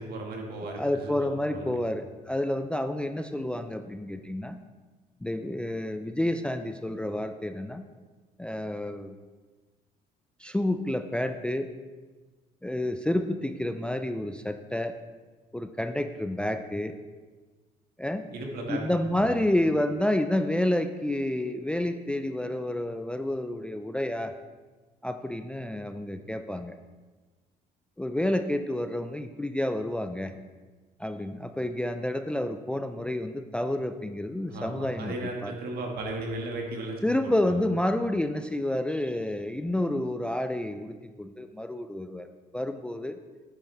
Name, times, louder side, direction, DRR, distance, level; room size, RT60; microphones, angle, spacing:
voice 1, 0.0-1.3 1.5-1.7 18.3-18.8 19.2-19.4 34.5-37.0 37.2-37.6, right 2 dB, 65° right, 1 dB, 1.9 m, -36 dB
voice 2, 0.7-4.6 5.2-7.8 8.4-9.2 10.4-11.7 12.6-15.0 15.5-17.0 18.0-18.2 18.7-24.3 25.0-26.8 28.0-30.3 31.0-35.5 37.0-42.3 42.5-43.2, left 1 dB, 5° left, 8 dB, 0.4 m, -29 dB
9.4 x 9.3 x 3.4 m, 1.3 s
cardioid pair, 110°, 17 cm